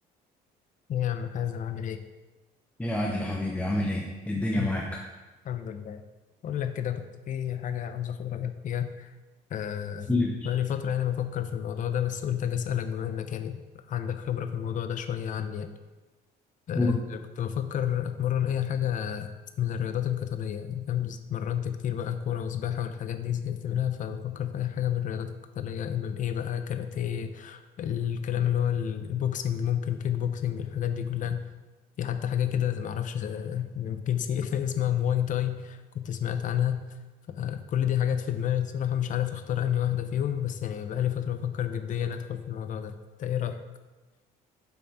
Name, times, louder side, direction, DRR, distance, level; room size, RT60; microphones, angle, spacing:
voice 1, 0.9-2.0 4.3-4.8 5.4-6.0 6.4-9.1 9.5-10.1 10.4-13.6 13.9-15.7 16.7-19.3 19.6-31.5 32.0-36.8 37.3-43.6, left 9 dB, 50° left, 9 dB, 0.6 m, -30 dB
voice 2, 2.8-4.9 10.1-10.3 16.8-17.0, left 1 dB, 10° left, -1 dB, 0.7 m, -27 dB
7.0 x 4.0 x 4.6 m, 1.2 s
cardioid pair, 110°, 17 cm